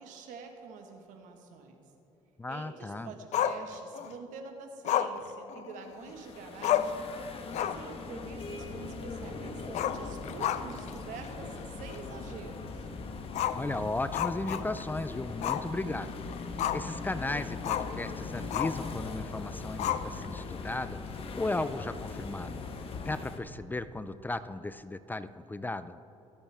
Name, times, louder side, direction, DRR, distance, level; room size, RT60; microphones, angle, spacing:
voice 1, 0.0-1.8 2.5-7.1 7.6-12.9, right 5 dB, 75° right, 4 dB, 1.6 m, -46 dB
voice 2, 2.4-3.1 13.5-16.2 16.7-21.0 21.4-22.6 23.1-26.0, left 2 dB, 15° left, 13 dB, 0.4 m, -35 dB
Growling, 3.3-4.1 4.8-6.1 6.4-6.5 6.6-7.0 7.4-7.9 8.2-8.3 9.7-10.9 11.2-11.3 11.9-12.0 13.3-14.9 15.4-15.7 16.0-17.0 17.6-17.9 18.5-18.9 19.8-20.4, left 10 dB, 60° left, 0.5 m, -31 dB
sound 1, 6.0-23.4, left 4 dB, 45° left, 1.2 m, -40 dB
23.0 x 8.1 x 3.5 m, 3.0 s
cardioid pair, 95°, 13 cm